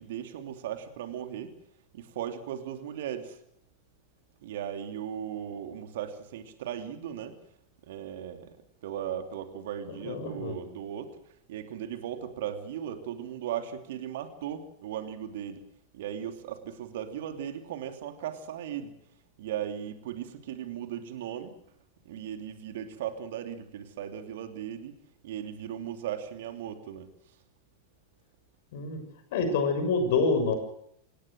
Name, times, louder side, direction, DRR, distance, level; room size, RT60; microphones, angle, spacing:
voice 1, 0.0-1.5 1.9-3.4 4.4-7.4 7.8-8.5 8.8-15.6 15.9-18.9 19.4-21.5 22.0-25.0 25.2-27.4, right 9 dB, 55° right, 7 dB, 3.0 m, -37 dB
voice 2, 10.0-10.6 28.7-29.0 29.3-30.6, left 4 dB, 55° left, 8 dB, 6.5 m, -27 dB
26.5 x 19.0 x 6.5 m, 0.75 s
figure-of-eight pair, 90°, 0 cm